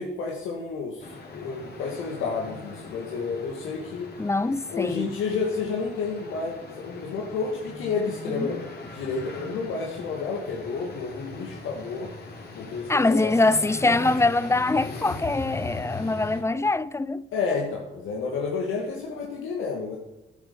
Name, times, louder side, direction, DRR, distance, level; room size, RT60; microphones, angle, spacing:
voice 1, 0.0-4.1 4.7-12.1 12.5-13.3 17.3-20.0, left 4 dB, 85° left, 2.3 m, -30 dB
sound 1, 1.0-16.4, left 3 dB, 55° left, 3.8 m, -40 dB
voice 2, 4.2-5.2 8.3-8.5 12.9-17.3, left 2 dB, 15° left, 0.6 m, -23 dB
12.0 x 10.0 x 7.0 m
cardioid pair, 90°, 20 cm